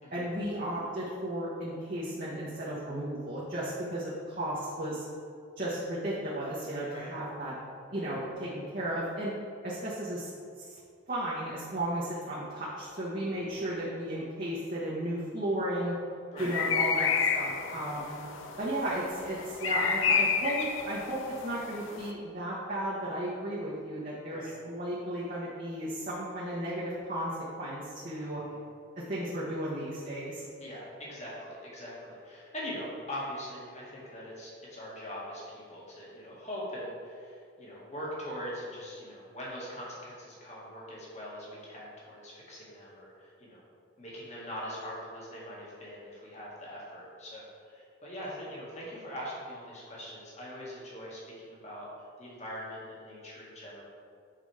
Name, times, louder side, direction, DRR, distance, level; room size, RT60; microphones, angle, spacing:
voice 1, 0.1-5.0 5.6-7.5 7.9-9.3 9.6-10.3 10.6-10.7 11.1-16.0 16.4-18.2 18.6-27.3 27.6-28.4 29.0-30.4, right 1 dB, 40° right, -7 dB, 1.2 m, -34 dB
sound 1, 16.4-22.1, left 6 dB, 80° left, 0.6 m, -30 dB
voice 2, 28.1-28.6 30.6-43.6 44.0-53.8, equal, 35° left, -6 dB, 1.9 m, -42 dB
7.6 x 5.0 x 4.9 m, 2.4 s
head